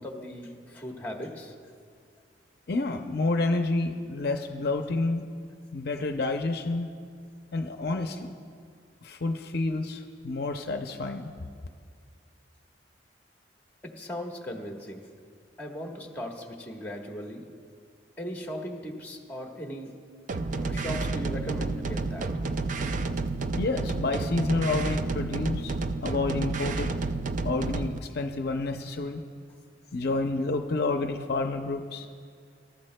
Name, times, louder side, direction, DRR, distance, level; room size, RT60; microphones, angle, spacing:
voice 1, 0.0-1.5 13.8-15.1 15.6-17.4 18.2-19.9 20.6-22.3, equal, 10° left, 0 dB, 1.2 m, -38 dB
voice 2, 2.7-5.2 5.7-6.9 7.5-8.3 9.0-11.3 23.5-25.7 26.0-26.9 27.4-29.2 29.9-32.1, left 3 dB, 60° left, 5 dB, 0.6 m, -29 dB
sound 1, 20.3-28.0, right 3 dB, 45° right, 0.4 m, -30 dB
23.5 x 12.5 x 2.2 m, 2.1 s
head